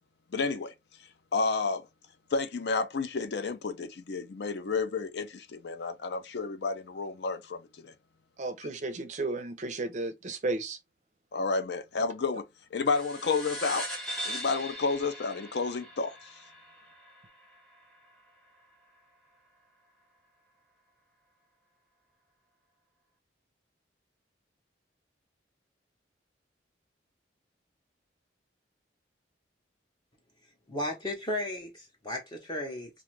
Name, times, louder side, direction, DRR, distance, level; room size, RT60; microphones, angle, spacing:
voice 1, 0.3-0.7 1.3-1.9 2.3-7.9 11.3-12.4 12.7-13.9 14.3-16.3, left 4 dB, 60° left, 0.5 m, -31 dB
voice 2, 8.4-10.8, right 2 dB, 40° right, 0.5 m, -33 dB
sound 1, 12.9-17.8, equal, 5° left, 1.0 m, -40 dB
voice 3, 30.7-32.9, left 1 dB, 25° left, 0.7 m, -34 dB
2.5 x 2.3 x 3.0 m
head